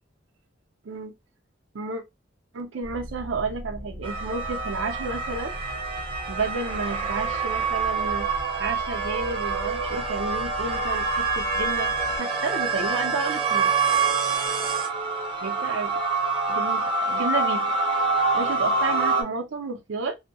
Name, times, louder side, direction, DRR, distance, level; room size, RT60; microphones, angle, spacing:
voice 1, 2.5-5.5 6.3-8.3 8.6-13.7 15.4-16.0 16.5-17.6 18.3-20.2, right 4 dB, 85° right, 0.5 m, -31 dB
sound 1, 2.8-12.2, equal, 60° left, 0.8 m, -40 dB
sound 2, 4.0-19.2, right 4 dB, 30° right, 0.7 m, -26 dB
2.6 x 2.1 x 2.6 m
head